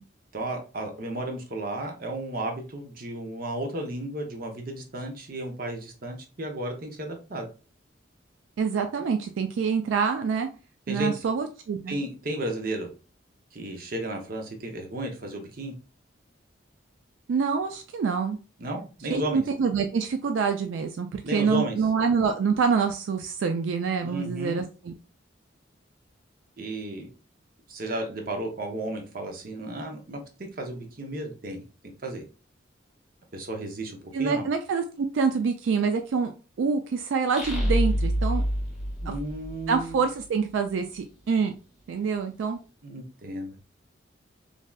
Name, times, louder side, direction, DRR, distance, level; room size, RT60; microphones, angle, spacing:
voice 1, 0.3-7.5 10.9-11.1 11.9-12.9 13.5-15.7 18.6-19.4 21.2-21.8 24.0-24.6 26.6-27.1 27.7-30.2 30.6-31.6 32.0-32.2 33.3-34.5 39.0-40.0 42.8-43.6, right 1 dB, 50° right, 3 dB, 0.6 m, -33 dB
voice 2, 8.6-10.5 10.9-12.0 17.3-18.4 19.1-24.9 34.1-36.3 36.6-38.4 39.7-41.5 41.9-42.6, right 5 dB, 80° right, 6 dB, 0.3 m, -26 dB
sound 1, 37.3-40.0, equal, 5° right, 1.0 m, -26 dB
3.2 x 2.6 x 2.2 m, 0.34 s
head